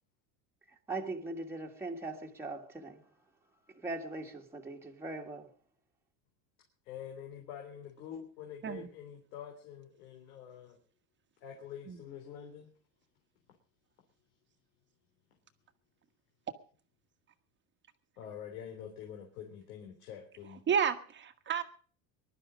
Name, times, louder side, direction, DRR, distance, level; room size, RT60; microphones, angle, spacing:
voice 1, 0.7-3.0 3.7-5.5, right 2 dB, 5° right, 1.8 m, -40 dB
voice 2, 6.8-10.8 11.4-12.7 18.2-20.6, left 9 dB, 85° left, 3.5 m, -46 dB
voice 3, 20.7-21.6, right 7 dB, 25° right, 1.4 m, -31 dB
21.0 x 12.0 x 5.1 m
cardioid pair, 145°, 43 cm